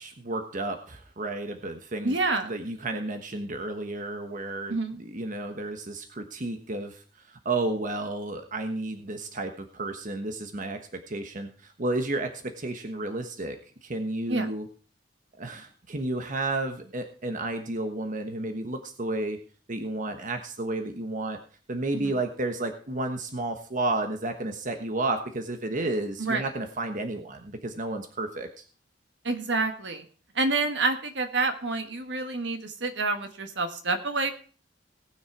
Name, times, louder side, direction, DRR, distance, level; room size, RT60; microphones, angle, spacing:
voice 1, 0.0-2.2 2.4-7.0 7.3-14.7 15.4-19.4 19.7-21.4 21.7-28.6, right 2 dB, 45° right, 6 dB, 1.3 m, -32 dB
voice 2, 2.0-2.5 4.7-5.0 14.3-14.5 21.9-22.1 26.2-26.4 29.2-30.0 30.3-34.3, right 3 dB, 70° right, 7 dB, 1.6 m, -28 dB
18.5 x 6.5 x 4.7 m, 0.41 s
head